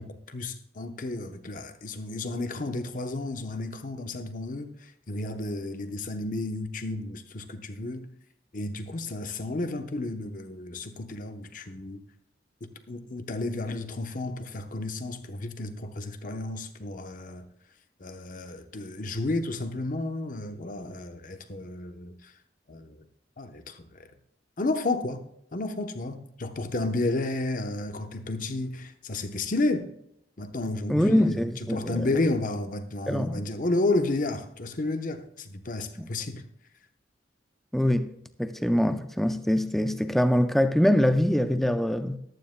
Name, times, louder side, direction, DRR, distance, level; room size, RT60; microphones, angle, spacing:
voice 1, 0.0-8.1 8.5-12.0 12.6-17.4 18.0-22.3 22.7-23.1 23.4-24.1 24.6-25.2 25.5-29.9 30.4-36.4, left 2 dB, 45° left, 0.8 m, -32 dB
voice 2, 30.9-32.1 33.1-33.5 36.0-36.1 37.7-38.1 38.4-42.2, equal, ahead, 0.5 m, -24 dB
14.0 x 12.0 x 2.2 m
head